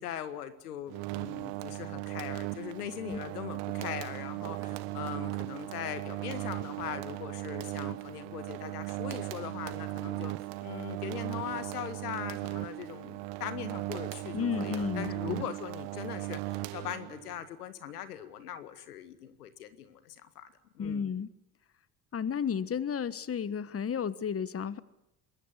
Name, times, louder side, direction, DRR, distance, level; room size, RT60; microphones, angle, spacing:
voice 1, 0.0-10.3 10.6-21.0, left 10 dB, 85° left, 11 dB, 2.0 m, -41 dB
sound 1, 0.9-17.4, right 19 dB, 65° right, 1.5 m, -37 dB
voice 2, 14.3-15.5 20.8-21.3 22.1-24.8, left 7 dB, 30° left, 16 dB, 1.4 m, -33 dB
26.0 x 21.0 x 9.7 m, 0.84 s
hypercardioid pair, 55°, 45 cm